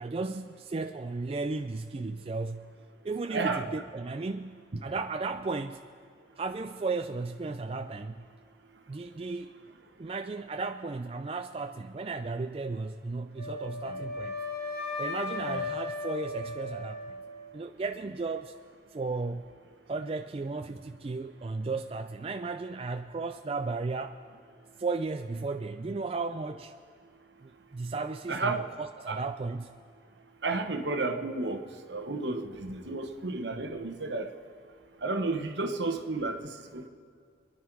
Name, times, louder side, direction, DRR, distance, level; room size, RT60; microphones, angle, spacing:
voice 1, 0.0-2.7 3.0-5.8 6.4-8.2 8.9-9.5 10.0-14.4 15.0-17.2 17.5-18.5 18.9-19.5 19.9-24.2 24.8-26.7 27.4-29.7, right 3 dB, 30° right, 8 dB, 0.3 m, -35 dB
voice 2, 3.3-3.7 13.9-14.0 15.4-15.6 28.3-28.7 29.1-29.2 30.4-34.3 35.0-36.9, right 3 dB, 70° right, 5 dB, 1.1 m, -32 dB
Wind instrument woodwind instrument, 13.4-17.5, left 3 dB, 55° left, 2.5 m, -36 dB
26.5 x 10.5 x 4.6 m, 2.1 s
head